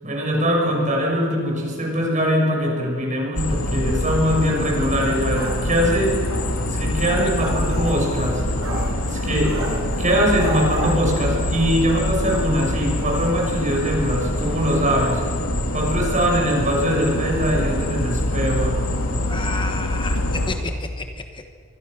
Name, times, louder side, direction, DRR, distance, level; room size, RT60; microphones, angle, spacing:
voice 1, 0.0-6.2 6.6-8.4 9.1-9.6 10.0-15.2 15.7-19.4, equal, 35° right, -1 dB, 6.7 m, -22 dB
sound 1, 3.3-20.5, left 1 dB, 70° left, 3.2 m, -25 dB
sound 2, 5.3-11.8 12.2-12.4 12.7-12.8 13.1-13.3, right 1 dB, 80° right, 5.9 m, -34 dB
voice 2, 19.3-21.5, left 2 dB, 25° left, 5 dB, 1.2 m, -31 dB
25.5 x 24.5 x 6.7 m, 2.1 s
head